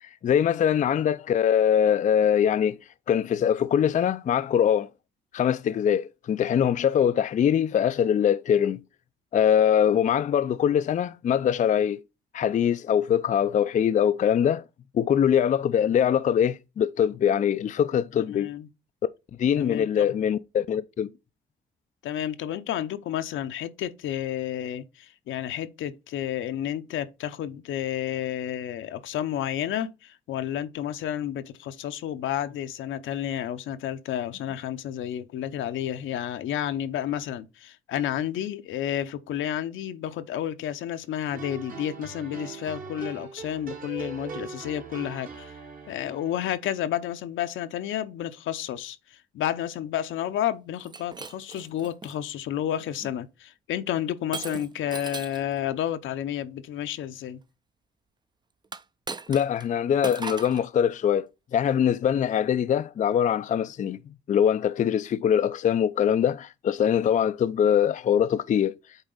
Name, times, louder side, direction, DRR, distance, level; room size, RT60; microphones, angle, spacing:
voice 1, 0.0-2.8 3.1-4.9 5.3-8.8 9.3-12.0 12.3-14.6 14.9-18.5 19.4-21.1 59.3-64.0 64.3-68.8, left 9 dB, 40° left, 0.4 m, -23 dB
voice 2, 18.3-18.7 19.6-20.1 22.0-45.5 45.9-57.4, left 11 dB, 80° left, 0.7 m, -31 dB
sound 1, 41.3-46.5, right 4 dB, 45° right, 1.5 m, -40 dB
Shatter, 50.8-52.2 52.8-53.1 54.3-55.5 58.6-59.7 60.0-60.7, right 4 dB, 20° right, 0.5 m, -38 dB
8.0 x 4.0 x 3.9 m
cardioid pair, 90°, 20 cm